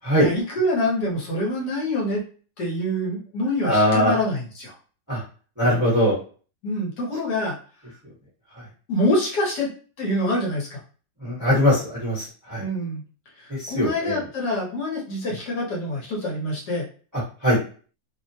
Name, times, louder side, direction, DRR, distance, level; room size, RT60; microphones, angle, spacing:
voice 1, 0.1-2.2 2.6-4.7 6.6-7.6 8.9-9.7 10.0-10.8 12.6-13.0 13.4-16.9, left 1 dB, 65° left, -3 dB, 1.5 m, -26 dB
voice 2, 3.6-4.1 5.1-5.2 5.6-6.1 11.2-12.6 13.5-14.2 17.4-17.6, equal, 15° right, -6 dB, 0.8 m, -21 dB
3.3 x 2.1 x 2.7 m, 0.40 s
omnidirectional pair, 2.0 m